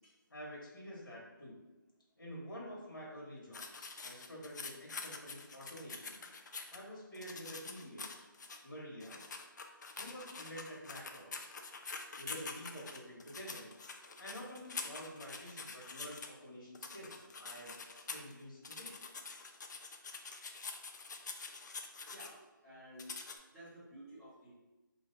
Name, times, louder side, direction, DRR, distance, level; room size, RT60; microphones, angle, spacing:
voice 1, 0.3-1.6 2.2-6.2 6.7-8.1 8.6-9.2 10.0-11.5 12.1-13.7 14.2-18.9, equal, 80° left, -5 dB, 1.3 m, -49 dB
sound 1, 3.5-6.8 7.1-8.6 9.0-16.3 16.7-18.3 18.6-22.3 23.0-23.4, left 4 dB, 60° left, 0.4 m, -46 dB
voice 2, 22.6-23.1 23.5-24.5, equal, 5° left, -14 dB, 1.0 m, -53 dB
2.7 x 2.2 x 3.8 m, 1.1 s
figure-of-eight pair, 160°, 11 cm